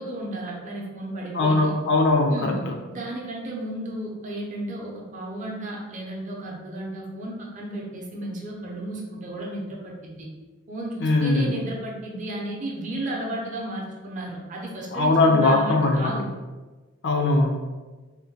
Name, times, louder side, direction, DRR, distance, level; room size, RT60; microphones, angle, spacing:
voice 1, 0.0-1.7 2.3-2.6 2.9-10.3 10.7-16.3, right 1 dB, 35° right, -3 dB, 0.6 m, -33 dB
voice 2, 1.3-2.5 11.0-11.6 14.9-16.1 17.0-17.6, left 2 dB, 50° left, 2 dB, 0.4 m, -20 dB
3.6 x 2.1 x 2.7 m, 1.3 s
head